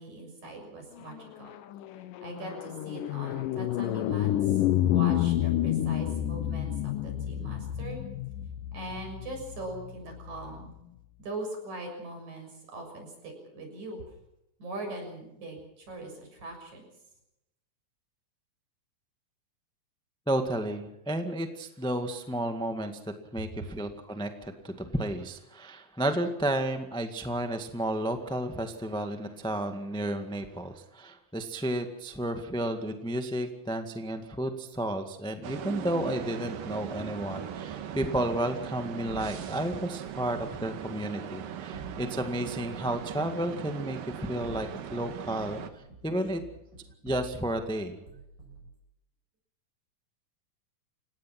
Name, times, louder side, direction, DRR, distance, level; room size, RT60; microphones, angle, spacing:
voice 1, 0.0-1.5 2.2-8.0 8.7-10.7 11.2-14.1 14.6-16.8, right 2 dB, 55° right, 3 dB, 7.9 m, -41 dB
sound 1, 1.1-10.6, left 12 dB, 75° left, 2.5 m, -30 dB
voice 2, 20.3-23.0 23.3-46.4 47.0-48.0, right 1 dB, 5° left, 6 dB, 0.5 m, -32 dB
sound 2, 35.4-45.7, right 9 dB, 75° right, 3.1 m, -39 dB
sound 3, 39.1-40.6 41.7-43.0 44.2-45.1 45.4-47.7 48.1-48.7, right 3 dB, 30° right, 8.7 m, -48 dB
29.5 x 17.0 x 6.0 m, 0.88 s
omnidirectional pair, 4.0 m